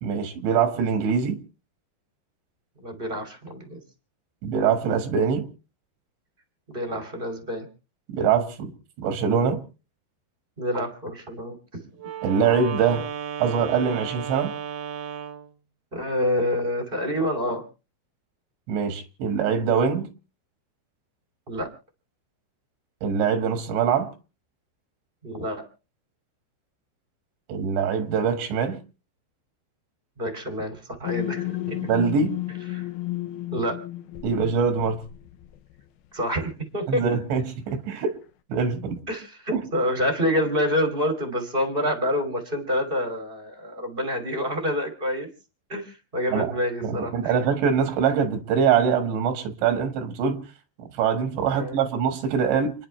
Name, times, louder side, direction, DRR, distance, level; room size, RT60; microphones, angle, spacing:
voice 1, 0.0-1.4 4.4-5.5 8.1-8.7 9.0-9.6 12.2-13.1 13.4-14.5 18.7-20.1 23.0-24.1 27.5-28.8 31.9-32.3 34.2-35.0 36.9-38.2 38.5-39.0 39.5-39.6 46.3-46.5 46.8-50.4 50.8-52.7, right 6 dB, 80° right, 4.0 m, -23 dB
voice 2, 2.8-3.8 6.7-7.7 10.6-11.9 15.9-17.6 21.5-21.7 25.2-25.6 30.2-31.8 32.7-32.9 33.5-33.8 34.4-34.5 36.1-37.0 39.1-45.3 45.7-47.4 51.5-51.9, equal, 20° right, 1.5 m, -27 dB
Wind instrument woodwind instrument, 12.0-15.5, right 8 dB, 60° right, 2.6 m, -34 dB
sound 1, 31.1-35.8, left 16 dB, 80° left, 3.2 m, -33 dB
29.5 x 10.5 x 3.3 m
omnidirectional pair, 5.2 m